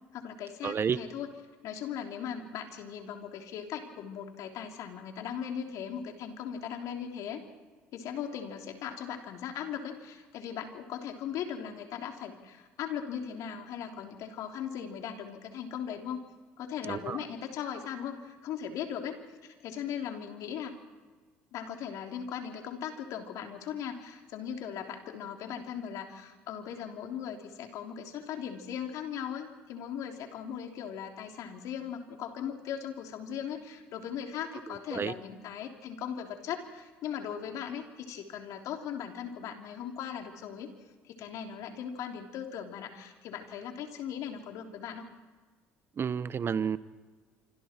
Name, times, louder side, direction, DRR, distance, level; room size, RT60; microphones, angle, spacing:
voice 1, 0.1-1.3 1.6-7.4 7.9-16.2 16.6-20.8 21.5-40.7 41.0-45.1, left 8 dB, 65° left, 3 dB, 3.3 m, -38 dB
voice 2, 0.6-1.0 16.9-17.2 34.9-35.1 46.0-46.8, right 7 dB, 40° right, 15 dB, 1.1 m, -30 dB
26.5 x 25.5 x 4.5 m, 1.4 s
hypercardioid pair, 70°, 6 cm